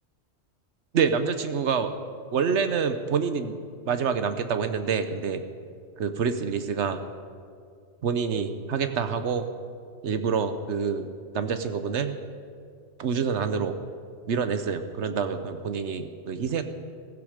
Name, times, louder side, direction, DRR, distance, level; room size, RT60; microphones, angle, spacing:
voice 1, 0.9-1.9 2.3-3.6 3.8-5.4 6.0-7.0 8.0-9.4 10.0-11.1 11.3-12.1 13.0-13.8 14.3-16.6, right 6 dB, 80° right, 9 dB, 1.2 m, -27 dB
15.5 x 15.5 x 5.1 m, 2.2 s
omnidirectional pair, 1.2 m